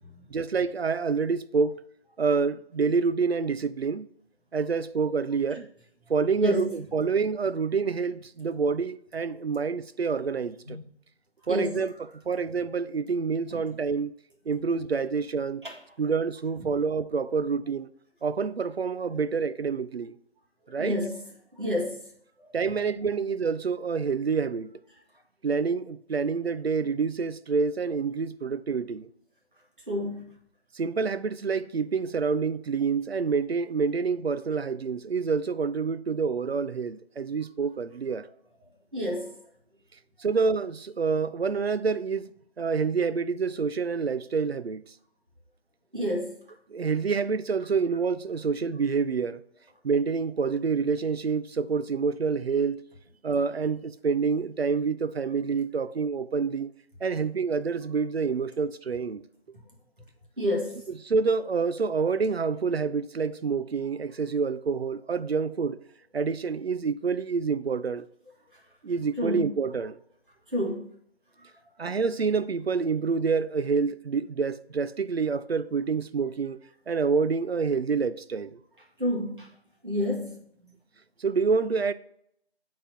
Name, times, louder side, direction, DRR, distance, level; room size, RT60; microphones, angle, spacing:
voice 1, 0.3-1.8 2.2-4.1 4.5-5.7 6.1-10.8 11.5-11.9 12.3-14.1 14.5-15.6 16.0-17.9 18.2-20.2 20.7-21.0 22.5-24.7 25.4-29.1 30.7-38.3 40.2-42.3 42.6-44.8 46.7-49.4 49.8-52.8 53.2-56.7 57.0-59.2 61.1-65.8 66.1-68.1 68.8-70.0 71.8-76.6 76.9-78.6 81.2-81.9, right 5 dB, 70° right, 0.5 m, -27 dB
voice 2, 6.4-6.7 10.7-10.8 11.5-11.8 13.5-13.6 15.6-15.8 20.8-21.2 21.6-22.1 22.4-22.5 29.9-30.3 38.9-39.4 45.9-46.4 60.4-60.9 69.2-69.5 70.5-70.8 79.0-79.5 79.8-80.4, left 1 dB, 55° right, 1.7 m, -29 dB
8.2 x 4.2 x 2.7 m
figure-of-eight pair, 175°, 32 cm